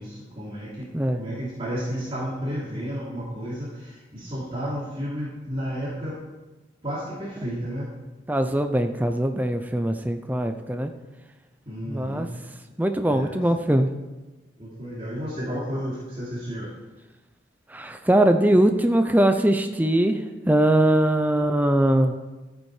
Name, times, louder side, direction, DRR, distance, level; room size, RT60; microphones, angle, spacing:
voice 1, 0.0-0.9 1.2-6.1 6.8-7.9 11.7-12.3 13.1-13.4 14.6-16.7, equal, 30° right, -8 dB, 2.9 m, -32 dB
voice 2, 8.3-10.9 11.9-12.3 12.8-13.9 17.7-20.2 20.5-22.1, right 1 dB, 10° right, 7 dB, 0.5 m, -21 dB
13.5 x 8.8 x 4.9 m, 1.1 s
head